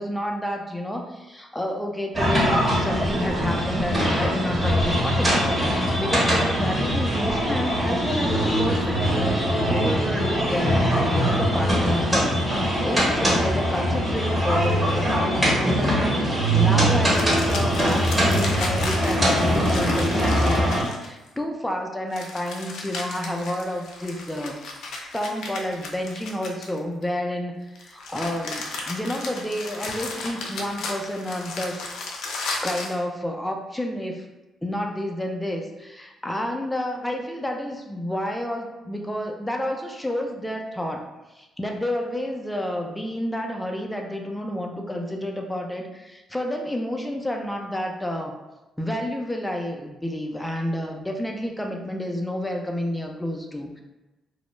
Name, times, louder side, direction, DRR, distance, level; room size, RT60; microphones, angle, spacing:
voice 1, 0.0-9.1 9.4-31.9 32.2-34.3 34.6-41.1 41.4-48.3 48.8-53.8, left 1 dB, 5° left, 2 dB, 0.4 m, -30 dB
sound 1, 2.1-20.8, equal, 15° right, 0.9 m, -22 dB
sound 2, 17.0-21.3 22.1-27.0 27.8-33.0, left 3 dB, 80° left, 0.4 m, -34 dB
2.3 x 2.0 x 3.0 m, 1.0 s
cardioid pair, 90°, 0 cm